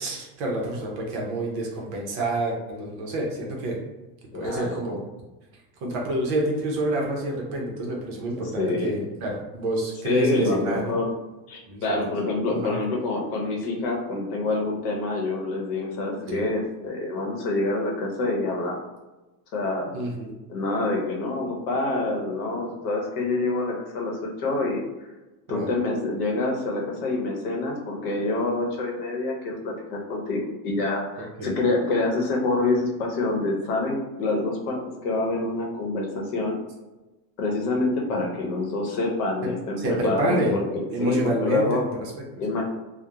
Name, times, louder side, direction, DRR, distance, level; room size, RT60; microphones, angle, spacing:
voice 1, 0.0-3.8 4.3-5.1 5.8-11.0 11.7-12.1 12.5-12.7 16.3-16.4 19.9-20.4 25.5-25.7 31.4-31.6 38.1-38.2 39.8-40.6 40.9-42.4, right 1 dB, 45° right, -1 dB, 0.5 m, -28 dB
voice 2, 4.3-5.0 8.3-9.0 10.0-11.1 11.5-18.8 19.5-19.9 20.5-24.1 24.4-24.8 25.5-36.5 37.4-41.8 42.4-42.6, left 2 dB, 75° left, 0 dB, 0.8 m, -26 dB
2.8 x 2.1 x 2.3 m, 1.1 s
supercardioid pair, 165°, 48 cm